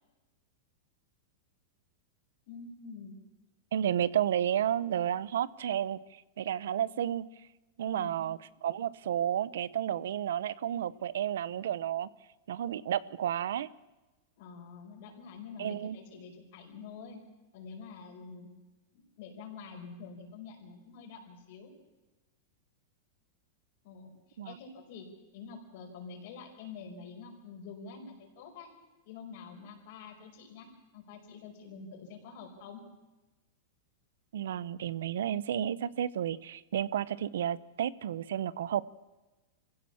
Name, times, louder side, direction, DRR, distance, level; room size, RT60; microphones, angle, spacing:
voice 1, 2.5-3.2 7.9-8.2 14.4-17.2 17.5-18.5 18.9-21.7 23.8-25.1 25.3-28.7 29.0-32.8, left 5 dB, 45° left, 3 dB, 5.3 m, -47 dB
voice 2, 3.7-6.0 6.4-7.2 7.8-12.1 12.5-13.7 15.6-16.0 24.4-24.6 34.3-38.8, right 10 dB, 80° right, 19 dB, 0.8 m, -31 dB
25.0 x 16.0 x 7.2 m, 1.1 s
supercardioid pair, 170°, 0 cm